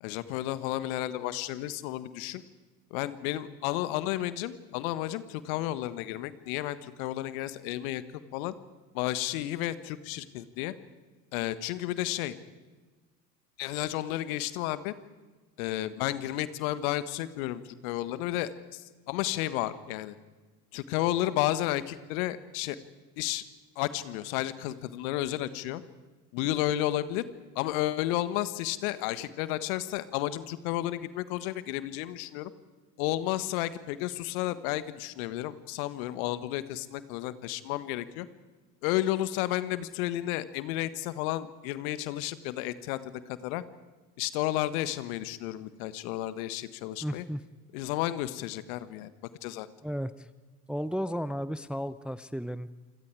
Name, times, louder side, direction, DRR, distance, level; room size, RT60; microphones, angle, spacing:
voice 1, 0.0-2.4 2.9-8.0 8.3-8.5 8.9-10.7 11.3-12.3 13.6-14.9 15.6-20.2 20.7-22.8 23.2-23.4 23.8-25.8 26.3-27.2 27.6-32.5 33.0-38.3 38.8-43.6 44.2-47.2 47.7-49.1 49.4-49.7, left 14 dB, 60° left, 14 dB, 1.6 m, -32 dB
voice 2, 47.0-47.4 49.8-50.3 50.7-52.7, equal, ahead, 15 dB, 0.7 m, -34 dB
28.0 x 26.5 x 4.9 m, 1.3 s
figure-of-eight pair, 70°, 48 cm